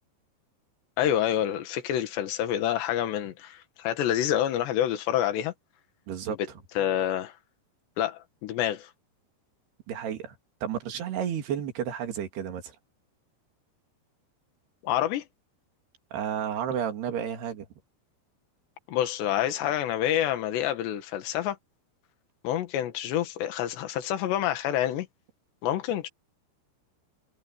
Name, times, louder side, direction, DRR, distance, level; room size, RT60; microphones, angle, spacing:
voice 1, 1.0-5.5 6.8-7.3 8.0-8.9 14.8-15.2 18.9-21.6 22.4-25.1 25.6-26.1, left 11 dB, 85° left, 3.9 m, -27 dB
voice 2, 6.1-6.4 9.9-10.4 10.6-12.8 16.1-17.7, right 9 dB, 70° right, 4.6 m, -31 dB
omnidirectional pair, 4.9 m